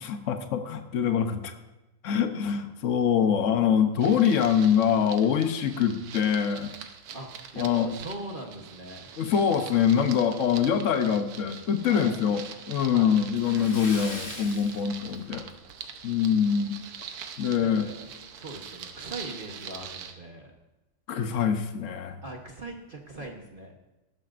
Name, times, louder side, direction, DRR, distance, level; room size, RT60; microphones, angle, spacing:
voice 1, 0.0-1.5 2.0-6.7 7.6-7.9 9.2-15.5 16.0-16.8 17.4-17.9 21.1-22.2, left 8 dB, 85° left, 7 dB, 0.6 m, -24 dB
sound 1, 4.0-20.1, right 7 dB, 85° right, 1.9 m, -43 dB
voice 2, 7.1-9.1 11.9-12.1 12.9-13.1 17.6-18.1 18.3-20.5 22.2-23.7, right 1 dB, 40° right, 1 dB, 0.7 m, -41 dB
Splash splatter, 13.3-15.7 16.0-16.2 16.6-16.7 18.2-18.3 18.6-18.7 19.3-19.6, left 2 dB, 55° left, 3.6 m, -41 dB
18.0 x 12.5 x 2.5 m, 1.0 s
omnidirectional pair, 2.4 m